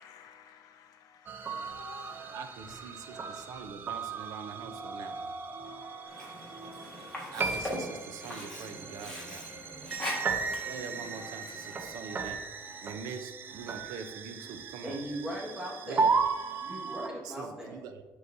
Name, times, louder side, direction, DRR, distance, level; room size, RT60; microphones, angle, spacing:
voice 1, 0.0-3.6 4.0-4.1 4.3-4.6 5.4-7.1, left 7 dB, 85° left, 0.5 m, -54 dB
sound 1, 1.3-17.1, right 4 dB, 35° right, 0.5 m, -36 dB
voice 2, 2.3-5.3 7.3-9.6 10.6-12.4 12.8-15.0 15.8-16.0 17.2-18.0, right 6 dB, 90° right, 0.6 m, -44 dB
Sink (filling or washing), 6.1-12.0, left 1 dB, 10° left, 1.5 m, -41 dB
voice 3, 14.8-16.1 16.6-17.8, equal, 10° right, 1.5 m, -38 dB
9.3 x 3.9 x 2.6 m
cardioid pair, 155°, 6 cm